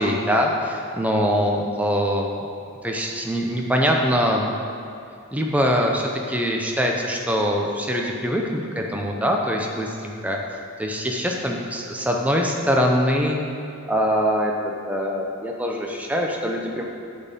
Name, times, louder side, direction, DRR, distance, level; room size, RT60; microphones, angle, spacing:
voice 1, 0.0-2.4 2.8-4.5 5.3-10.4 10.8-13.4 13.9-16.9, equal, 5° right, 0 dB, 0.7 m, -23 dB
8.5 x 4.4 x 7.3 m, 2.5 s
head